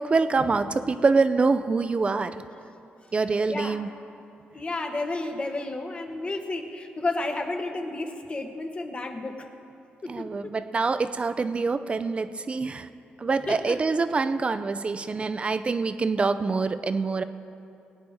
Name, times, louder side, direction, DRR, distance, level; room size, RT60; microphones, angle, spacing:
voice 1, 0.0-2.4 3.1-3.9 10.1-12.9 13.2-17.2, right 4 dB, 30° right, 11 dB, 0.5 m, -25 dB
voice 2, 3.5-3.8 4.5-9.5 10.0-10.5 13.5-13.8, left 2 dB, 30° left, 5 dB, 1.1 m, -32 dB
20.0 x 9.2 x 3.6 m, 2.6 s
cardioid pair, 110°, 4 cm